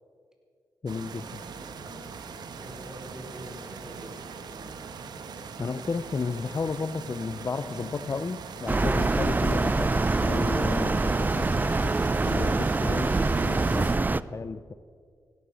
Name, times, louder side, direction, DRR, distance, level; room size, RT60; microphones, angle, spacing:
voice 1, 0.8-1.4 5.6-14.7, left 4 dB, 40° left, 14 dB, 0.5 m, -33 dB
sound 1, 0.9-14.0, right 5 dB, 80° right, 1.2 m, -41 dB
voice 2, 1.7-2.1 2.5-4.8, equal, 10° right, 1 dB, 4.4 m, -46 dB
sound 2, 8.7-14.2, right 3 dB, 25° right, 0.5 m, -25 dB
16.5 x 12.5 x 6.3 m, 2.2 s
cardioid pair, 55°, 7 cm